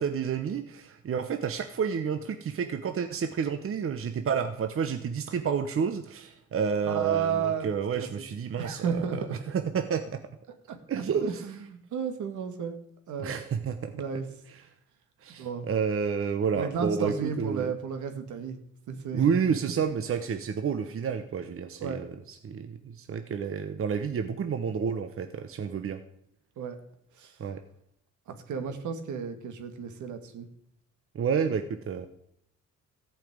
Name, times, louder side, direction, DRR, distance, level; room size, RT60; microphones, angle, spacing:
voice 1, 0.0-10.2 10.9-11.4 13.2-13.9 14.5-14.6 15.2-17.7 19.1-26.0 27.4-27.6 31.1-32.1, right 6 dB, 45° right, 8 dB, 1.0 m, -30 dB
voice 2, 6.8-7.7 8.0-8.1 8.6-9.5 10.7-10.8 11.2-12.7 13.1-13.4 13.9-14.3 15.4-15.7 16.5-18.6 18.9-19.3 21.8-22.0 26.6-26.8 27.2-27.4 28.3-30.5, right 7 dB, 75° right, 7 dB, 2.0 m, -32 dB
14.0 x 5.8 x 8.8 m, 0.73 s
cardioid pair, 90°, 30 cm